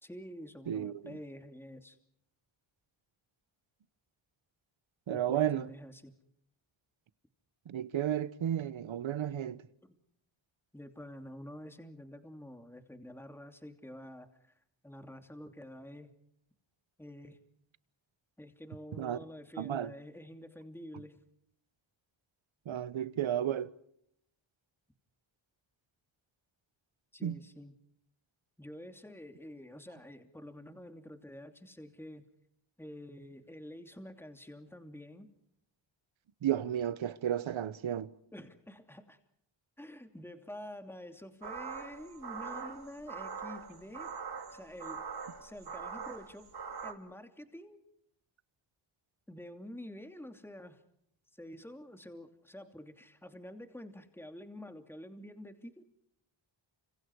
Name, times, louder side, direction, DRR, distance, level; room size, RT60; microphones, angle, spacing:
voice 1, 0.0-2.0 5.1-6.1 9.8-10.0 10.7-14.5 14.8-16.1 17.0-17.4 18.4-21.2 27.1-27.7 28.6-32.3 32.8-35.3 38.3-39.2 39.8-44.1 44.5-45.1 45.4-46.5 46.8-47.8 49.3-50.8 51.3-55.8, left 1 dB, 5° left, 2.8 m, -48 dB
voice 2, 0.7-1.1 5.1-5.7 7.7-9.6 19.0-19.2 19.6-19.9 22.7-23.7 27.2-27.4 36.4-38.1, right 10 dB, 80° right, 1.2 m, -33 dB
sound 1, 41.4-46.9, right 5 dB, 55° right, 2.9 m, -43 dB
30.0 x 26.5 x 4.8 m
cardioid pair, 70°, 47 cm